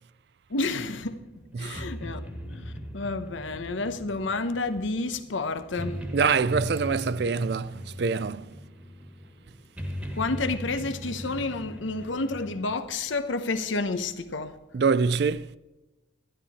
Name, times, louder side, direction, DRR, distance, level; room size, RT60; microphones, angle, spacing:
voice 1, 0.5-1.2 1.6-6.0 10.2-14.6, left 3 dB, 80° left, 0.9 m, -30 dB
sound 1, 0.9-12.8, equal, 5° right, 1.5 m, -39 dB
voice 2, 6.1-8.5 14.7-15.5, right 5 dB, 55° right, 0.4 m, -25 dB
12.5 x 10.0 x 4.2 m
head